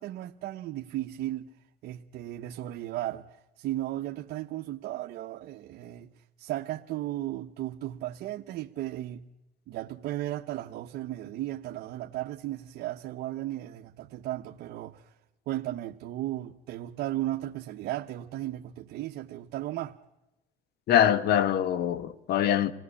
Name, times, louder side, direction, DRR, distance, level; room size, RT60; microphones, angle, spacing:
voice 1, 0.0-1.5 1.8-9.3 9.7-15.1 15.5-19.9, right 14 dB, 75° right, 1.0 m, -35 dB
voice 2, 20.9-22.7, left 10 dB, 70° left, 1.4 m, -23 dB
27.0 x 18.0 x 9.8 m
cardioid pair, 110°, 17 cm